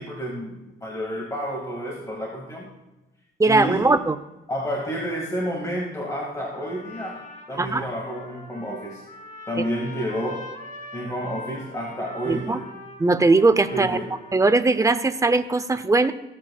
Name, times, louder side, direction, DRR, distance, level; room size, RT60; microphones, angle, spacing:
voice 1, 0.0-2.7 3.5-3.9 4.5-9.0 9.5-10.5 10.9-12.7 13.7-14.1, equal, 15° left, -2 dB, 2.2 m, -30 dB
voice 2, 3.4-4.2 7.6-7.9 12.3-12.6 13.0-14.0 14.3-16.1, right 3 dB, 15° right, 10 dB, 0.7 m, -19 dB
Trumpet, 6.5-15.0, left 1 dB, 40° left, 2.2 m, -42 dB
16.0 x 8.5 x 2.4 m, 1.0 s
cardioid pair, 90°, 20 cm